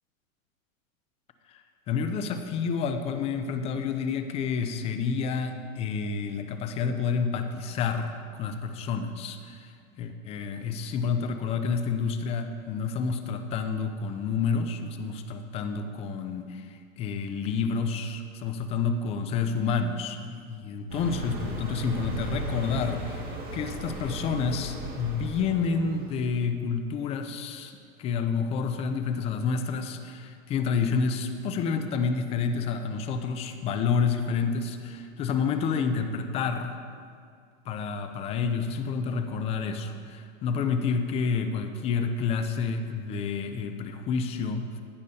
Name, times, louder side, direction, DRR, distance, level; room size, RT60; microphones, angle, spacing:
voice 1, 1.5-36.8 37.7-44.8, left 5 dB, 15° left, 8 dB, 0.3 m, -29 dB
Car passing by, 20.9-26.4, right 1 dB, 20° right, 1.8 m, -36 dB
15.0 x 9.8 x 2.7 m, 2.3 s
hypercardioid pair, 125°, 40 cm